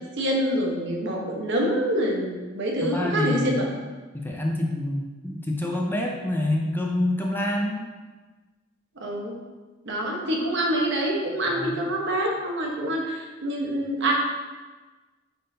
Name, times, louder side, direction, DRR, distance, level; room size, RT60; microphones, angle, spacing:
voice 1, 0.2-3.7 9.0-9.3 9.8-14.1, right 1 dB, 60° right, 0 dB, 1.1 m, -26 dB
voice 2, 2.8-3.6 4.1-7.9 11.5-11.8, left 1 dB, 10° left, 0 dB, 0.5 m, -27 dB
8.9 x 3.7 x 2.8 m, 1.3 s
head